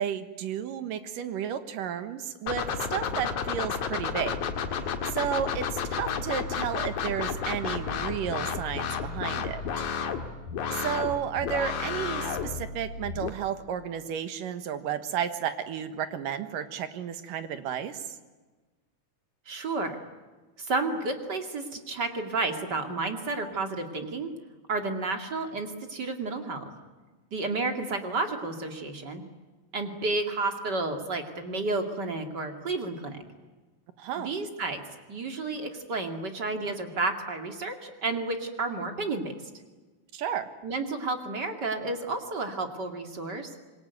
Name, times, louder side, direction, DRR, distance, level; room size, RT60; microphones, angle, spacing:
voice 1, 0.0-2.6 2.9-9.8 10.8-18.0 34.0-34.3 40.1-40.5, right 9 dB, 70° right, 10 dB, 2.9 m, -32 dB
sound 1, 2.5-13.3, left 6 dB, 60° left, 3.0 m, -32 dB
voice 2, 19.5-20.0 20.6-24.3 24.7-26.6 27.3-29.2 29.7-33.2 34.2-34.8 35.1-39.2 40.6-43.5, right 3 dB, 35° right, 5 dB, 2.4 m, -31 dB
26.0 x 23.0 x 9.4 m, 1.3 s
omnidirectional pair, 4.2 m